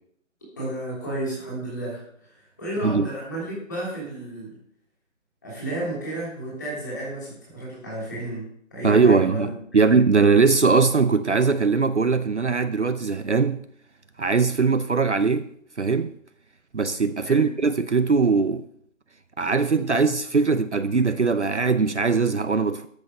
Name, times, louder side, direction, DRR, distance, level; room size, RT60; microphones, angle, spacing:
voice 1, 0.6-4.6 5.4-9.5 17.2-17.5, right 1 dB, 15° left, 3.2 m, -32 dB
voice 2, 8.8-13.7 14.2-15.5 15.8-16.1 16.7-18.7 19.4-22.9, right 4 dB, 60° right, 0.6 m, -20 dB
13.0 x 6.3 x 5.4 m
figure-of-eight pair, 175°, 40 cm